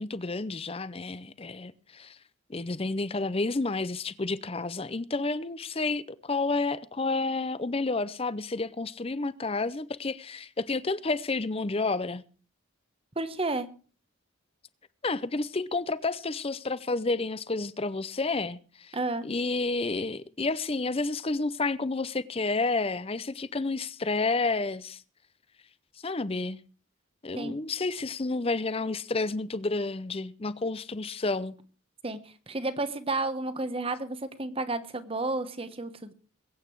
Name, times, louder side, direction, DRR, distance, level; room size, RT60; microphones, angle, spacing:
voice 1, 0.0-2.2 2.5-12.2 15.0-19.0 19.2-25.0 26.0-26.6 27.2-31.5, left 3 dB, 30° left, 0.6 m, -30 dB
voice 2, 13.2-13.7 18.9-19.2 27.4-27.6 32.0-36.1, right 2 dB, 25° right, 1.1 m, -31 dB
21.5 x 9.0 x 4.6 m
head